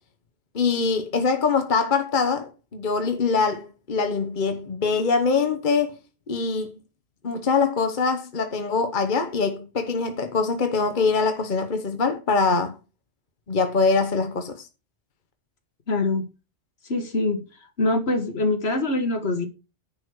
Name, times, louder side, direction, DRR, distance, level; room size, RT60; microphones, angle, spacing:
voice 1, 0.5-5.9 6.3-6.7 7.2-12.8 13.5-14.7, left 4 dB, 45° left, 1.2 m, -23 dB
voice 2, 15.9-16.3 16.9-17.4 17.8-19.5, left 2 dB, 60° left, 1.8 m, -24 dB
10.0 x 4.9 x 6.3 m
omnidirectional pair, 1.2 m